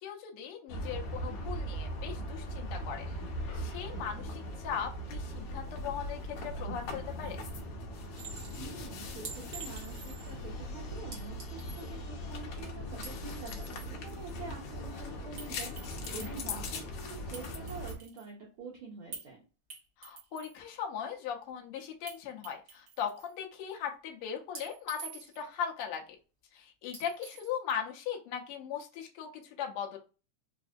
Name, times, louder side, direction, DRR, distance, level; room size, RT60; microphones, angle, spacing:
voice 1, 0.0-3.1 3.5-7.4 16.5-16.6 20.0-26.0 26.5-30.0, left 8 dB, 85° left, 1 dB, 1.2 m, -39 dB
sound 1, 0.7-17.9, left 1 dB, 70° left, 1.4 m, -39 dB
Chink clink, 8.2-8.6 9.3-10.3 11.1-11.9 12.9-13.9 15.4-15.5 15.8-16.6 17.3-18.3 19.1-19.3 19.7-20.6 22.1-22.2 22.4-23.3 24.6-25.5 26.9-27.5, right 4 dB, 60° right, 1.0 m, -46 dB
voice 2, 8.6-16.9 17.3-19.4, right 5 dB, 75° right, -3 dB, 1.2 m, -46 dB
4.7 x 2.5 x 2.4 m, 0.33 s
omnidirectional pair, 3.5 m